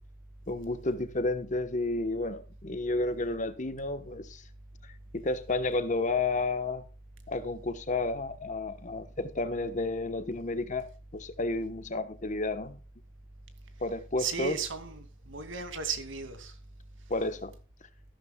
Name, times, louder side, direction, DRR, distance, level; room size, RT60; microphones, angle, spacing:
voice 1, 0.5-4.4 4.8-6.8 7.3-10.9 11.1-12.8 13.8-14.6 17.1-17.5, left 2 dB, 40° left, 1.1 m, -31 dB
voice 2, 14.2-15.0 15.3-16.5, right 6 dB, 75° right, 2.4 m, -35 dB
14.5 x 12.5 x 2.3 m
head